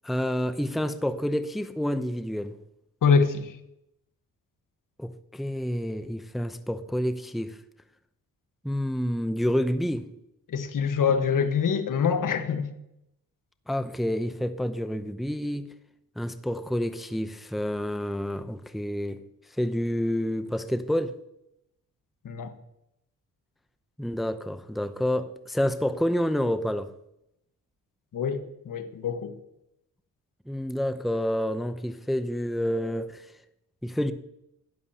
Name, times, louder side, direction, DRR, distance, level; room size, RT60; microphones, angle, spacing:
voice 1, 0.0-2.6 5.0-7.6 8.6-10.1 13.7-15.7 16.2-19.2 19.6-21.2 24.0-26.9 30.5-33.3 33.8-34.1, equal, ahead, 0.6 m, -28 dB
voice 2, 3.0-3.6 10.5-12.7 22.2-22.5 28.1-29.3, left 6 dB, 70° left, 1.3 m, -25 dB
12.5 x 10.5 x 2.8 m
cardioid pair, 75°, 34 cm